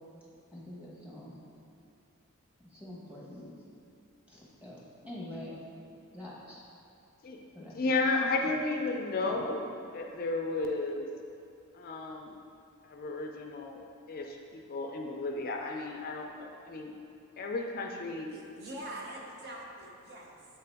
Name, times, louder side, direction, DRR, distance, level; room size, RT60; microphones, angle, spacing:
voice 1, 0.5-1.4 2.7-3.6 4.3-5.6 6.1-6.6 7.5-7.8 9.2-9.4, left 1 dB, 5° right, -6 dB, 1.2 m, -45 dB
voice 2, 7.2-9.7 9.9-11.1 11.7-12.4 12.8-13.8 14.1-16.9 17.4-18.3, left 3 dB, 40° left, 2 dB, 0.4 m, -33 dB
voice 3, 18.3-20.5, right 1 dB, 50° right, -2 dB, 0.7 m, -44 dB
7.5 x 3.8 x 3.4 m, 2.6 s
head